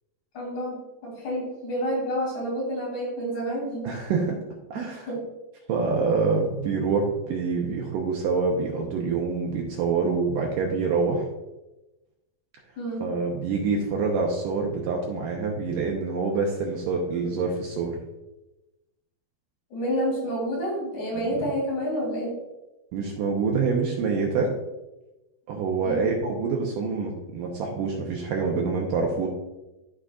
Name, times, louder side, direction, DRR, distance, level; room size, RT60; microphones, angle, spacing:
voice 1, 0.3-3.9 4.8-5.2 12.8-13.1 19.7-22.4 25.8-26.1, equal, 50° left, -4 dB, 3.8 m, -29 dB
voice 2, 3.8-4.4 4.7-5.1 5.7-11.3 13.0-18.0 21.3-21.4 22.9-24.5 25.5-29.3, right 4 dB, 75° right, 0 dB, 2.1 m, -26 dB
13.0 x 5.0 x 2.4 m, 1.0 s
omnidirectional pair, 4.4 m